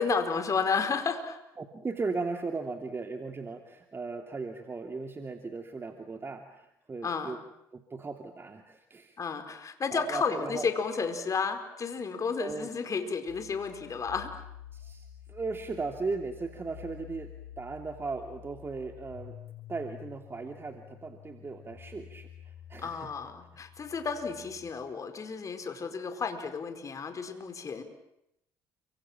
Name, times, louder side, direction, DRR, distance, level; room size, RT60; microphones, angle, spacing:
voice 1, 0.0-1.4 7.0-7.4 9.2-14.4 22.8-27.8, left 5 dB, 40° left, 7 dB, 4.7 m, -32 dB
voice 2, 1.6-7.4 7.7-9.2 9.9-10.7 12.4-12.7 14.7-17.3 17.6-19.4 19.7-23.1, right 4 dB, 30° right, 4 dB, 2.8 m, -37 dB
sound 1, 13.3-24.7, left 12 dB, 80° left, 6.3 m, -50 dB
30.0 x 26.0 x 7.4 m, 0.80 s
supercardioid pair, 70°, 8 cm